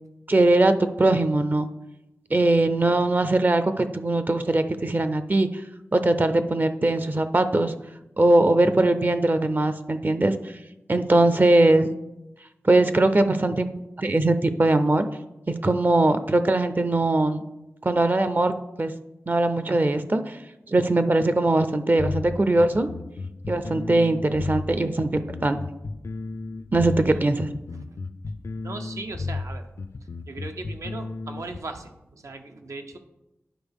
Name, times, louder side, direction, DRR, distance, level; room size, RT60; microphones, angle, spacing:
voice 1, 0.3-1.7 2.3-5.5 5.9-7.7 8.2-10.3 10.9-11.9 12.6-13.7 14.0-15.1 15.5-17.4 17.8-18.5 18.8-18.9 19.3-20.4 20.7-22.9 23.5-25.6 26.7-27.5, right 2 dB, 40° right, 10 dB, 0.5 m, -21 dB
sound 1, 22.0-31.6, left 3 dB, 65° left, 0.4 m, -33 dB
voice 2, 26.8-27.3 27.9-28.0 28.6-29.7 30.3-33.0, right 3 dB, 85° right, 6 dB, 0.6 m, -38 dB
10.0 x 4.4 x 3.5 m, 0.94 s
wide cardioid pair, 50°, 5 cm